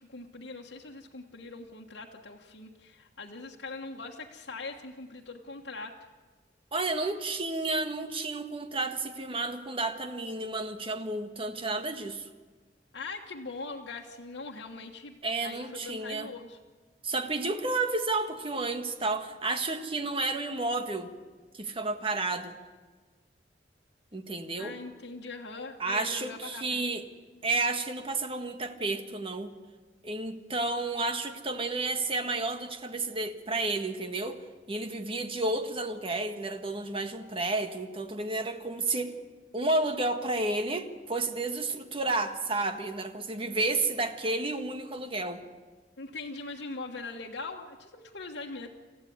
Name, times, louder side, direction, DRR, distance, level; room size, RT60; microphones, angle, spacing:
voice 1, 0.1-6.0 12.9-15.1 15.4-16.6 24.6-26.8 46.0-48.7, left 3 dB, 85° left, -2 dB, 1.5 m, -41 dB
voice 2, 6.7-12.3 15.2-16.3 17.0-21.1 21.5-22.6 24.1-24.8 25.8-27.0 27.4-29.5 30.0-34.4 34.7-39.1 39.5-45.4, right 2 dB, 30° right, 7 dB, 1.6 m, -31 dB
28.0 x 14.5 x 9.5 m, 1.4 s
head